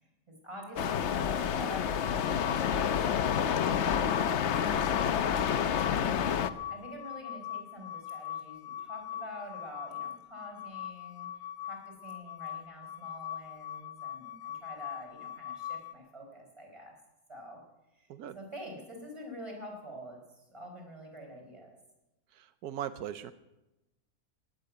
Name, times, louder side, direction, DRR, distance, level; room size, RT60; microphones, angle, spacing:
voice 1, 0.3-11.3 11.6-16.9 17.3-17.6 17.9-18.1 18.3-21.8, equal, 20° right, 0 dB, 4.6 m, -47 dB
sound 1, 0.8-6.5, left 8 dB, 60° left, 0.9 m, -29 dB
sound 2, 1.9-15.9, left 10 dB, 90° left, 1.3 m, -42 dB
voice 2, 22.6-23.3, right 10 dB, 90° right, 12 dB, 1.2 m, -38 dB
18.5 x 7.7 x 9.3 m, 0.96 s
omnidirectional pair, 1.6 m